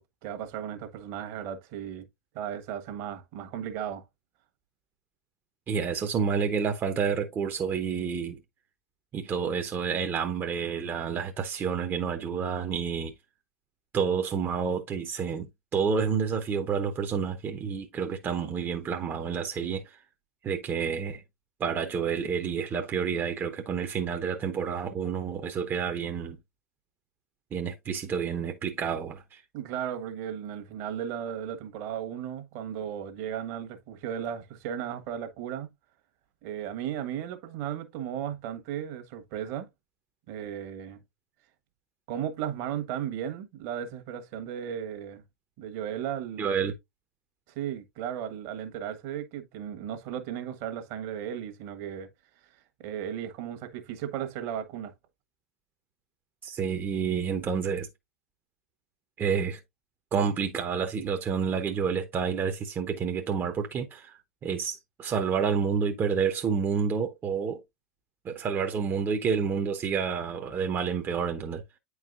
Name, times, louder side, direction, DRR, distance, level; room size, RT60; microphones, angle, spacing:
voice 1, 0.2-2.1 2.3-4.0 29.5-35.7 36.4-39.7 40.3-41.0 42.1-45.2 45.6-46.5 47.5-52.1 52.8-54.9, right 9 dB, 50° right, 1.4 m, -35 dB
voice 2, 5.7-8.4 9.1-13.1 13.9-20.0 20.4-21.2 21.6-26.4 27.5-29.4 46.4-46.7 56.4-57.9 59.2-59.6 60.1-67.6 68.2-71.6, right 6 dB, 25° right, 0.9 m, -29 dB
9.1 x 4.7 x 2.5 m
figure-of-eight pair, 95°, 8 cm